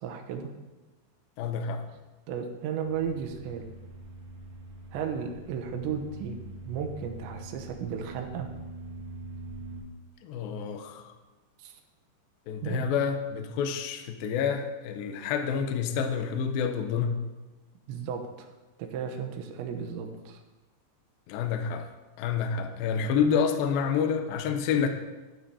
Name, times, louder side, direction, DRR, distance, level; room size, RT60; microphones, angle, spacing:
voice 1, 0.0-0.5 2.3-3.6 4.9-6.4 6.6-8.5 11.6-11.8 12.6-12.8 17.9-18.5 18.8-20.4, right 7 dB, 80° right, 4 dB, 3.2 m, -34 dB
voice 2, 1.4-1.8 10.2-11.1 12.5-17.1 21.3-21.9 22.2-24.9, left 7 dB, 85° left, 6 dB, 2.1 m, -28 dB
sound 1, 2.8-9.8, right 2 dB, 60° right, 3.4 m, -44 dB
12.5 x 12.5 x 2.9 m, 1.2 s
omnidirectional pair, 5.3 m